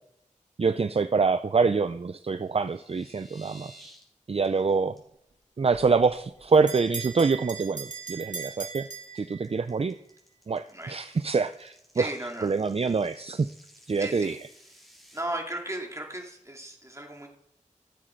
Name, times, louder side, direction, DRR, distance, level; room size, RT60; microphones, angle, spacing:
voice 1, 0.6-3.7 4.3-5.0 5.6-8.9 9.1-10.0 10.5-12.1 12.4-13.5 13.9-14.4, right 4 dB, 50° right, 12 dB, 0.4 m, -25 dB
sound 1, 2.4-4.0 4.3-4.6 5.0-5.1 5.4-5.7 6.0-6.5 6.9-15.2, right 1 dB, ahead, 3.5 m, -55 dB
Bell, 5.7-9.8, right 5 dB, 70° right, 1.4 m, -39 dB
voice 2, 10.7-11.2 11.9-12.5 14.0-14.4 15.1-17.3, right 1 dB, 20° right, 1 dB, 2.5 m, -36 dB
15.0 x 7.5 x 4.5 m, 0.76 s
wide cardioid pair, 65°, 13 cm